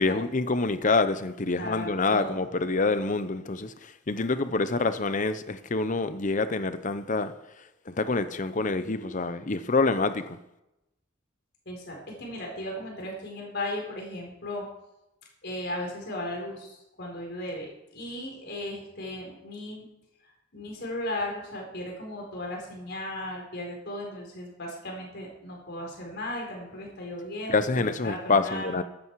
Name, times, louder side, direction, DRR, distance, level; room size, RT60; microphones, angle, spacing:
voice 1, 0.0-7.3 7.9-10.4 27.5-28.8, left 3 dB, 40° left, 0.8 m, -26 dB
voice 2, 1.6-2.4 11.7-14.7 15.4-19.9 20.5-28.7, left 1 dB, 55° left, 4.4 m, -36 dB
14.5 x 12.0 x 4.8 m
head